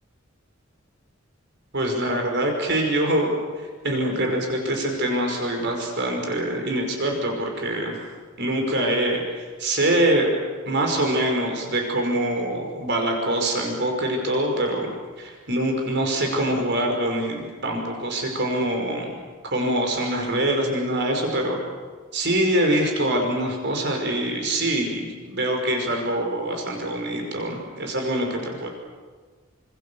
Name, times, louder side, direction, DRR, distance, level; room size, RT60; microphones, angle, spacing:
voice 1, 1.7-8.0 8.4-10.3 10.7-14.9 15.2-19.2 19.4-21.6 22.1-28.7, right 1 dB, 55° right, 2 dB, 5.4 m, -24 dB
28.0 x 26.5 x 7.1 m, 1.4 s
head